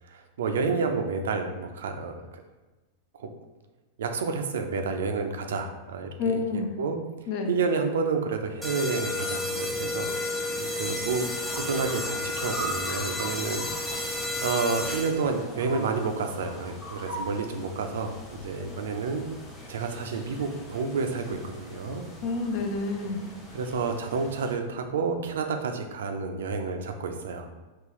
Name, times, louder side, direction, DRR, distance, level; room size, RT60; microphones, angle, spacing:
voice 1, 0.1-2.4 3.2-3.3 4.0-7.0 7.4-19.3 19.7-22.0 23.5-27.6, right 4 dB, 85° right, 5 dB, 0.4 m, -30 dB
voice 2, 6.2-6.7 7.3-7.5 22.2-23.2, left 4 dB, 55° left, 4 dB, 0.5 m, -28 dB
sound 1, 8.6-15.4, left 2 dB, ahead, 0.5 m, -31 dB
sound 2, 11.3-24.5, equal, 30° left, 1.1 m, -42 dB
3.8 x 2.4 x 3.0 m, 1.2 s
hypercardioid pair, 120°, 0 cm